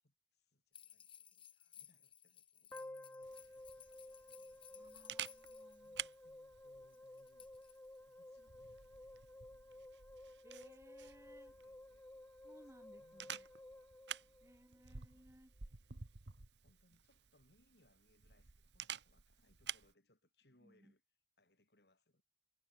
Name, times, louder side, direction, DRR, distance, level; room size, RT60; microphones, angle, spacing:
voice 1, 0.0-5.0 5.7-9.0 9.3-9.9 11.1-12.1 12.5-14.6 16.3-21.0 21.4-22.2, left 1 dB, 65° left, 4.2 m, -76 dB
sound 1, 0.7-6.2 6.9-8.1, left 10 dB, 30° left, 1.6 m, -60 dB
sound 2, 2.7-14.9, left 1 dB, 10° left, 0.4 m, -55 dB
Camera, 3.2-19.9, right 9 dB, 80° right, 1.3 m, -52 dB
voice 2, 4.8-6.0 8.4-8.5 10.4-11.5 12.4-13.5 14.4-15.5 20.6-20.9, equal, 15° right, 5.8 m, -63 dB
head